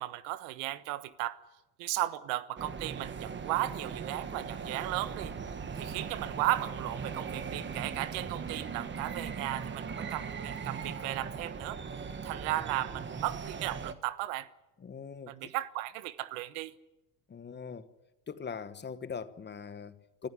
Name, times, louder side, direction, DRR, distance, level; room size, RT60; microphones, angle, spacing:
voice 1, 0.0-1.4 1.8-5.3 5.7-11.8 12.2-14.5 15.3-16.7, right 16 dB, 80° right, 1.3 m, -35 dB
sound 1, 2.6-13.9, right 6 dB, 25° right, 1.5 m, -39 dB
voice 2, 14.8-15.3 17.3-17.9 18.3-20.3, left 6 dB, 25° left, 1.2 m, -41 dB
25.0 x 14.5 x 9.7 m
supercardioid pair, 120°, 45 cm